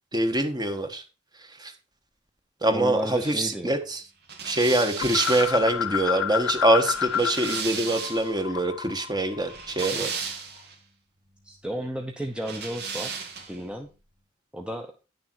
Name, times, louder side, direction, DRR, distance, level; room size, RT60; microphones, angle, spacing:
voice 1, 0.1-1.0 1.6-1.7 2.6-4.0 4.4-10.1, right 1 dB, 20° right, 7 dB, 1.4 m, -24 dB
voice 2, 2.7-3.7 11.4-13.2 13.5-13.9 14.5-14.9, equal, 5° right, 2 dB, 0.9 m, -33 dB
sound 1, 4.3-8.4 9.3-10.7 12.4-13.7, right 5 dB, 55° right, 2.0 m, -35 dB
sound 2, 5.0-7.6 7.9-10.2, left 9 dB, 75° left, 0.4 m, -30 dB
10.5 x 6.8 x 4.7 m, 0.31 s
head